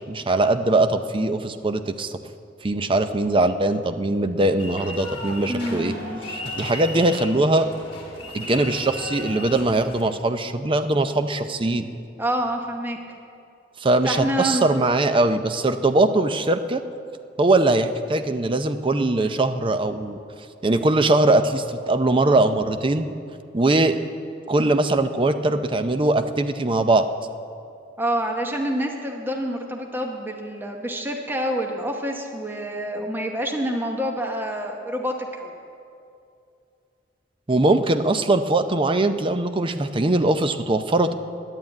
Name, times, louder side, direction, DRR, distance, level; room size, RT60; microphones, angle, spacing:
voice 1, 0.1-2.2 2.6-5.9 6.3-7.7 8.3-11.9 13.8-16.8 17.4-20.2 20.6-23.1 23.5-24.0 24.5-27.0 37.5-41.1, right 2 dB, 25° right, 9 dB, 0.5 m, -21 dB
sound 1, 4.6-10.0, left 1 dB, 30° left, 1.8 m, -35 dB
voice 2, 5.5-6.2 12.2-13.0 14.0-14.6 28.0-35.5, equal, 10° right, 2 dB, 0.9 m, -27 dB
11.0 x 9.5 x 8.8 m, 2.5 s
head